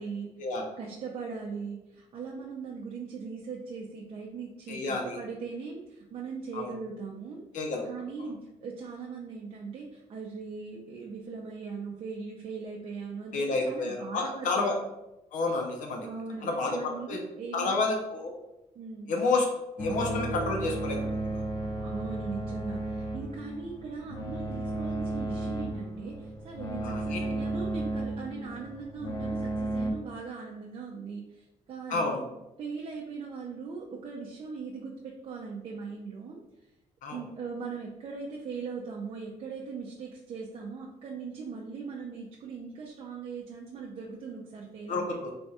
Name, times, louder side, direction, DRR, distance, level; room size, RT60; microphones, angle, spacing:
voice 1, 0.0-0.3 0.8-7.4 7.9-14.7 16.0-17.9 18.8-19.1 21.8-32.1 32.6-36.4 37.1-45.2, right 5 dB, 45° right, -2 dB, 0.5 m, -40 dB
voice 2, 4.7-5.2 6.5-6.7 7.5-7.8 8.2-8.3 13.3-14.8 15.3-16.1 16.4-17.2 17.5-18.3 19.1-19.5 19.8-21.4 26.8-27.4 31.9-32.3 37.0-37.2 44.9-45.3, left 3 dB, 70° left, 1 dB, 0.7 m, -30 dB
sound 1, 19.8-29.9, right 2 dB, 25° left, 0.5 m, -34 dB
3.4 x 2.3 x 4.1 m, 0.94 s
cardioid pair, 155°, 14 cm